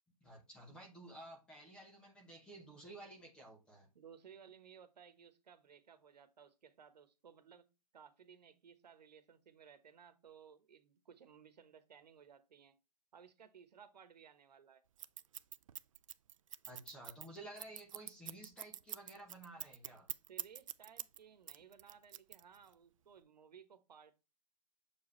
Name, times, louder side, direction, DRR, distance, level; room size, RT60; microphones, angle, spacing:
voice 1, 0.2-3.9 16.7-20.1, right 1 dB, 5° left, 0.9 m, -53 dB
voice 2, 3.9-7.7 7.9-12.7 13.1-14.8 20.1-24.2, right 7 dB, 85° right, 1.2 m, -59 dB
Scissors, 15.0-21.2 21.5-22.7, right 10 dB, 55° right, 0.4 m, -45 dB
7.0 x 4.7 x 3.1 m
hypercardioid pair, 175°, 21 cm